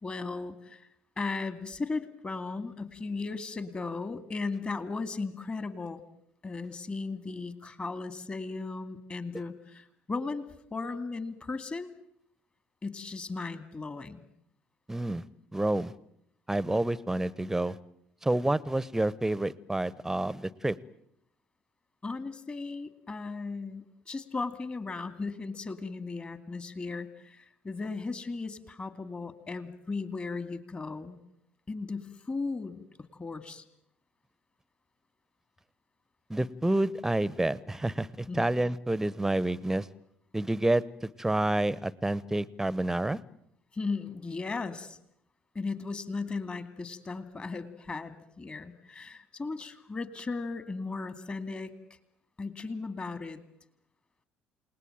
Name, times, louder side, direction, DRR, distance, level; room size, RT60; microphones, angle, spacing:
voice 1, 0.0-0.9 1.2-6.0 6.4-11.9 12.8-14.2 22.0-31.2 31.7-32.8 33.2-33.6 38.3-38.5 43.7-45.0 45.5-51.7 52.4-53.4, left 3 dB, 25° left, 13 dB, 2.3 m, -36 dB
voice 2, 14.9-15.2 15.5-15.9 16.5-17.8 18.2-20.8 36.3-39.9 40.3-43.2, right 1 dB, 10° right, 22 dB, 1.0 m, -29 dB
29.5 x 19.0 x 9.0 m, 0.76 s
figure-of-eight pair, 55°, 5 cm